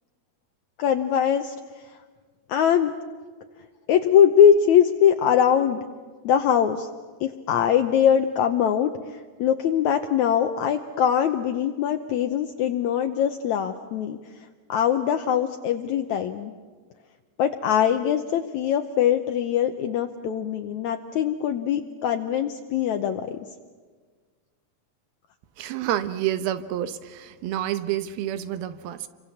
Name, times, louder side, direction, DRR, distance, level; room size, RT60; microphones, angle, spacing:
voice 1, 0.8-1.5 2.5-2.9 3.9-5.8 6.2-6.9 7.2-8.9 9.4-14.2 14.7-16.5 17.4-23.5, left 9 dB, 85° left, 6 dB, 1.6 m, -22 dB
voice 2, 25.6-29.1, right 12 dB, 75° right, 12 dB, 2.7 m, -28 dB
28.5 x 24.5 x 7.2 m, 1.5 s
omnidirectional pair, 4.5 m